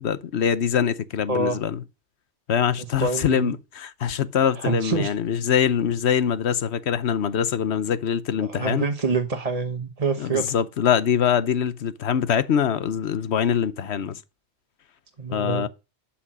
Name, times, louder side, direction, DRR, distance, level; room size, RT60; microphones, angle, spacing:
voice 1, 0.0-1.8 2.5-8.8 10.2-14.2 15.3-15.7, left 8 dB, 80° left, 1.1 m, -23 dB
voice 2, 3.0-3.5 4.6-5.1 8.4-10.5 15.2-15.7, right 4 dB, 35° right, 1.2 m, -26 dB
11.5 x 6.1 x 6.1 m
omnidirectional pair, 1.1 m